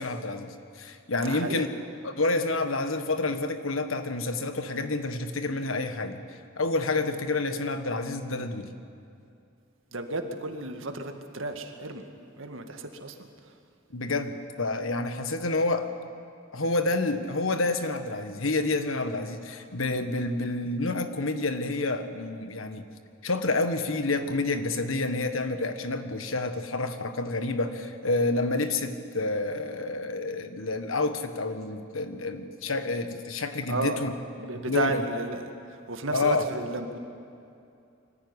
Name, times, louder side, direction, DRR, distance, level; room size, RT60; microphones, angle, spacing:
voice 1, 0.0-1.7 2.0-6.2 6.6-8.7 13.9-15.9 16.5-22.9 23.2-34.1 34.7-35.0 36.1-36.4, left 2 dB, 90° left, 9 dB, 1.5 m, -29 dB
voice 2, 1.2-1.7 9.9-12.1 12.4-13.3 33.7-34.0 34.4-37.0, right 2 dB, 75° right, 5 dB, 2.0 m, -33 dB
24.0 x 15.0 x 9.8 m, 2.6 s
head